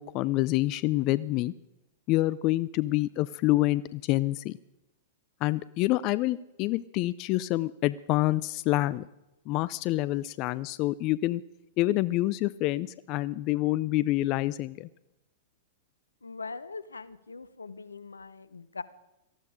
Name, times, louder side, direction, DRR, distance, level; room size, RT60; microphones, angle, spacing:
voice 1, 0.0-1.5 2.1-4.6 5.4-9.0 9.5-11.4 11.8-14.9, left 17 dB, 45° left, 18 dB, 0.5 m, -27 dB
voice 2, 16.2-18.8, left 4 dB, 90° left, 17 dB, 0.9 m, -41 dB
19.0 x 14.0 x 5.0 m, 0.94 s
hypercardioid pair, 105°, 0 cm